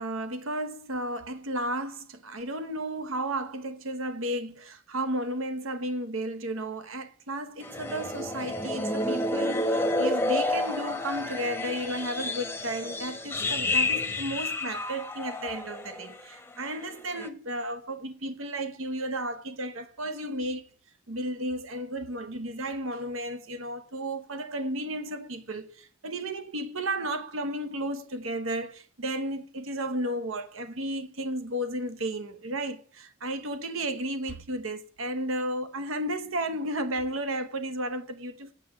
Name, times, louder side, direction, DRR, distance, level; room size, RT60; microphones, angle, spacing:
voice 1, 0.0-20.7 21.1-38.5, right 1 dB, 80° right, 1.0 m, -33 dB
sound 1, 7.6-16.2 16.5-16.8 17.2-17.3, left 2 dB, 10° left, 0.7 m, -30 dB
7.8 x 7.3 x 6.2 m
head